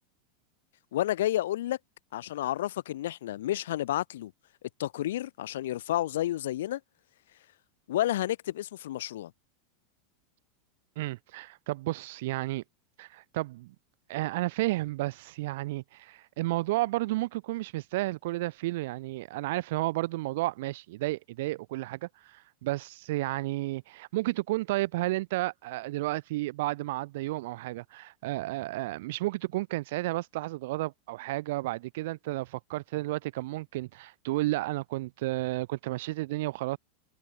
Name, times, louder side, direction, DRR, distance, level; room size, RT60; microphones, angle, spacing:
voice 1, 0.9-1.8 2.1-4.3 4.8-6.8 7.9-9.3, left 13 dB, 90° left, 1.4 m, -30 dB
voice 2, 11.0-12.6 13.0-13.7 14.1-36.8, right 19 dB, 55° right, 1.0 m, -32 dB
supercardioid pair, 175°, 0 cm